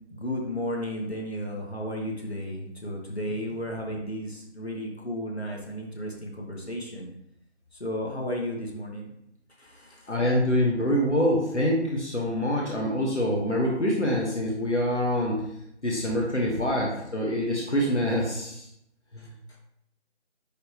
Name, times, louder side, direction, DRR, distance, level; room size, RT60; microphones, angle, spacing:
voice 1, 0.1-7.1 7.7-9.1 9.6-10.1 19.2-19.6, equal, 65° left, -1 dB, 1.8 m, -34 dB
voice 2, 10.1-15.4 15.8-18.7 19.1-19.3, equal, 80° left, -2 dB, 1.6 m, -25 dB
10.0 x 3.5 x 3.0 m, 0.77 s
figure-of-eight pair, 175°, 35 cm